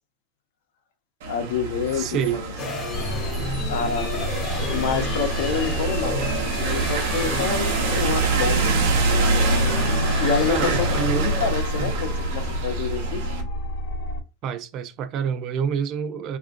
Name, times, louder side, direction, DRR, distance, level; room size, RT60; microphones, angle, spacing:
sound 1, 1.2-13.4, right 4 dB, 90° right, 0.8 m, -26 dB
voice 1, 1.3-2.4 3.7-4.3 4.7-6.3 6.6-8.8 10.2-13.4, left 6 dB, 90° left, 0.7 m, -27 dB
voice 2, 1.9-2.4 10.5-11.3 11.7-11.9 14.4-16.4, right 7 dB, 35° right, 0.3 m, -27 dB
sound 2, 2.6-11.5, left 3 dB, 25° left, 0.6 m, -31 dB
sound 3, 2.9-14.2, equal, 50° left, 0.8 m, -30 dB
3.4 x 2.4 x 2.4 m
supercardioid pair, 165°, 0 cm